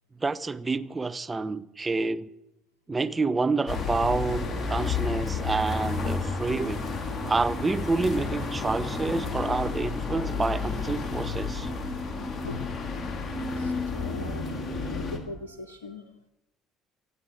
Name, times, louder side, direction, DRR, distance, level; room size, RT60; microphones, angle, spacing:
voice 1, 0.2-2.3 2.9-6.9 7.2-11.7, right 3 dB, 25° right, 0.9 m, -28 dB
sound 1, 3.7-15.2, left 4 dB, 35° left, 2.9 m, -31 dB
voice 2, 12.4-12.8 13.3-16.1, left 3 dB, 90° left, 0.7 m, -41 dB
25.0 x 8.6 x 4.7 m
hypercardioid pair, 60°, 0 cm